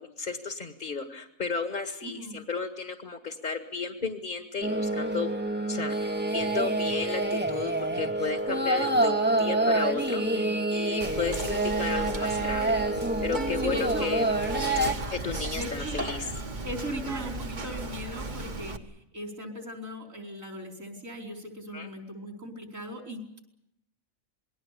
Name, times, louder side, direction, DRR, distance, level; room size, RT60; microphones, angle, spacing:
voice 1, 0.0-5.3 5.7-12.7 13.2-14.4 15.1-16.3 21.7-21.9, left 5 dB, 40° left, 5 dB, 1.9 m, -33 dB
voice 2, 2.0-2.4 10.2-10.5 13.6-14.1 15.5-16.0 16.6-18.7 19.1-23.4, equal, 75° right, 2 dB, 5.1 m, -38 dB
sound 1, 4.6-14.9, right 2 dB, 10° right, 1.0 m, -27 dB
Whispering, 11.0-18.8, right 2 dB, 35° right, 1.5 m, -35 dB
27.5 x 21.0 x 6.7 m, 0.77 s
omnidirectional pair, 1.4 m